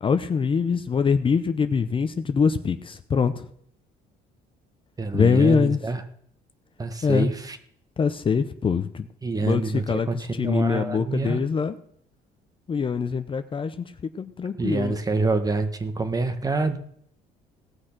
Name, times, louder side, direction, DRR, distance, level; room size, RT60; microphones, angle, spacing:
voice 1, 0.0-3.5 5.1-5.8 7.0-7.3 8.0-9.1 9.4-11.8 12.7-15.0, left 6 dB, 30° left, 10 dB, 0.7 m, -24 dB
voice 2, 5.0-6.0 6.8-7.6 9.2-11.4 14.6-16.8, right 3 dB, 20° right, 9 dB, 1.4 m, -26 dB
17.5 x 6.3 x 5.9 m, 0.64 s
cardioid pair, 110°, 17 cm